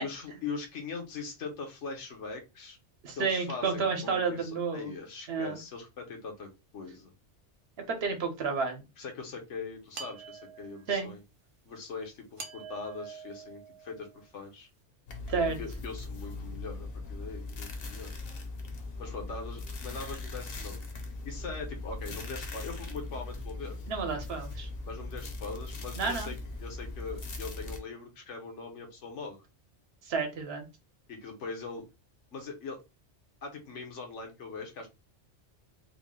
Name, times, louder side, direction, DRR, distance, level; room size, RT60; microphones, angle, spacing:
voice 1, 0.0-2.8 3.2-7.1 9.0-11.2 11.6-14.7 15.5-18.1 19.0-20.8 21.2-23.8 24.8-29.4 31.1-31.8 32.3-32.8 33.4-34.9, left 4 dB, 80° left, 3 dB, 1.3 m, -41 dB
voice 2, 3.0-4.9 5.3-5.6 7.9-8.8 10.9-11.1 15.3-15.6 23.9-24.7 26.0-26.3 30.1-30.6, right 5 dB, 60° right, 4 dB, 1.1 m, -30 dB
sound 1, 9.9-11.0 12.4-14.3, right 5 dB, 35° right, 0.5 m, -45 dB
sound 2, 15.1-27.8, left 2 dB, 55° left, 1.0 m, -40 dB
3.7 x 2.1 x 3.7 m, 0.26 s
omnidirectional pair, 1.2 m